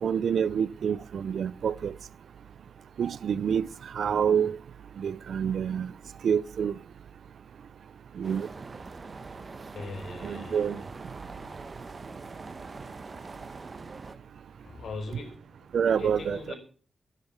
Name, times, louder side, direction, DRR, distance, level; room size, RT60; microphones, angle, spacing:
voice 1, 0.0-1.9 3.0-3.7 3.9-4.6 5.0-5.9 6.2-6.7 8.2-8.5 10.2-10.8 15.7-16.5, right 7 dB, 65° right, 0.6 m, -27 dB
sound 1, 8.2-14.2, right 3 dB, 30° right, 1.1 m, -43 dB
voice 2, 9.7-10.8 14.6-15.4 16.0-16.5, left 3 dB, 70° left, 4.6 m, -39 dB
12.5 x 9.9 x 7.3 m
wide cardioid pair, 180°, 0 cm